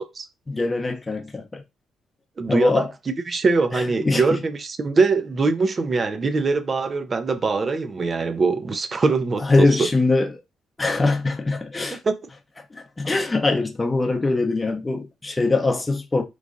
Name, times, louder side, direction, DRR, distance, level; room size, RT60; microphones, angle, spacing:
voice 1, 0.5-1.6 2.5-2.9 3.7-4.4 9.4-10.3 10.8-12.0 12.7-16.2, left 3 dB, 20° left, 0.8 m, -22 dB
voice 2, 2.4-2.8 3.3-9.9 11.9-12.1, right 4 dB, 35° right, 0.6 m, -22 dB
3.1 x 2.4 x 3.7 m
cardioid pair, 90°, 0 cm